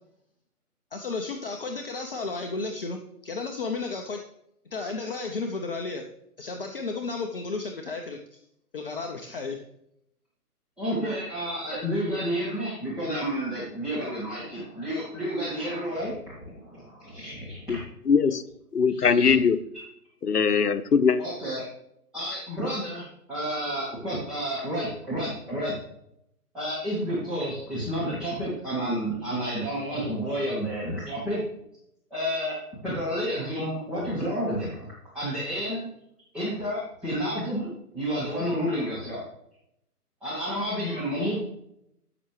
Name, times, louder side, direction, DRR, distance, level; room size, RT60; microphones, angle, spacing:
voice 1, 0.9-4.2 4.7-6.0 6.4-8.4 8.7-9.6, left 3 dB, 35° left, 0.7 m, -33 dB
voice 2, 10.8-17.8 18.9-19.3 21.2-21.7 22.1-25.7 26.5-31.4 32.1-32.6 32.8-34.7 35.1-35.9 36.3-39.2 40.2-41.4, equal, ahead, 0.9 m, -30 dB
voice 3, 18.0-18.4 18.7-19.6 20.2-21.2, left 6 dB, 75° left, 0.9 m, -21 dB
13.5 x 5.9 x 3.2 m
figure-of-eight pair, 140°, 47 cm